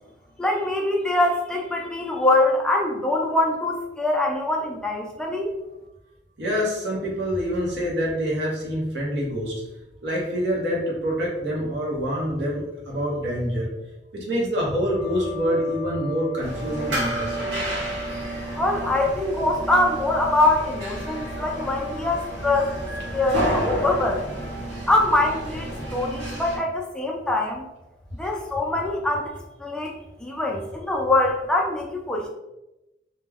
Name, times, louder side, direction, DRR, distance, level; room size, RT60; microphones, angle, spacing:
voice 1, 0.4-5.5 18.6-22.7 23.1-24.5 24.9-27.6 28.1-32.3, left 2 dB, 5° left, 0 dB, 0.3 m, -23 dB
voice 2, 6.4-9.6 10.0-13.7 14.1-17.5, equal, 65° right, -4 dB, 0.7 m, -26 dB
sound 1, 14.9-23.0, right 2 dB, 25° right, 0.7 m, -37 dB
sound 2, 16.4-26.6, equal, 90° right, 1.0 m, -31 dB
2.2 x 2.1 x 3.3 m, 0.95 s
head